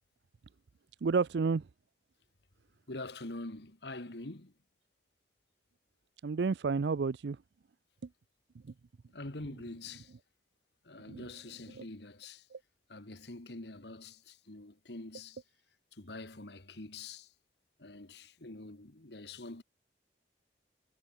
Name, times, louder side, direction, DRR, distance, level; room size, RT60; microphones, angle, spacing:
voice 1, 1.0-1.6 6.2-7.4 11.1-11.3 11.8-11.9 12.5-12.6, right 4 dB, 65° right, 0.4 m, -30 dB
voice 2, 2.9-4.5 9.1-10.1 10.8-12.5 12.9-15.4 15.9-17.3 17.8-19.6, left 2 dB, 65° left, 1.9 m, -45 dB
head